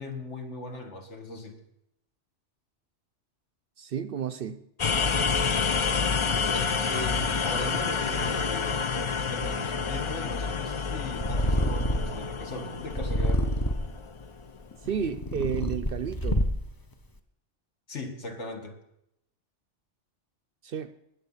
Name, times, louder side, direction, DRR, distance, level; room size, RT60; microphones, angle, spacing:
voice 1, 0.0-1.6 6.5-13.4 17.9-18.8, left 1 dB, 70° left, 3 dB, 2.1 m, -38 dB
voice 2, 3.8-4.6 14.9-16.4 20.6-20.9, right 8 dB, 60° right, 12 dB, 0.7 m, -31 dB
sound 1, 4.8-14.6, left 5 dB, 50° left, 0.3 m, -29 dB
Purr, 11.1-12.2 12.9-14.0 14.7-16.8, equal, 20° left, 0.7 m, -27 dB
19.5 x 6.7 x 5.6 m, 0.80 s
omnidirectional pair, 1.2 m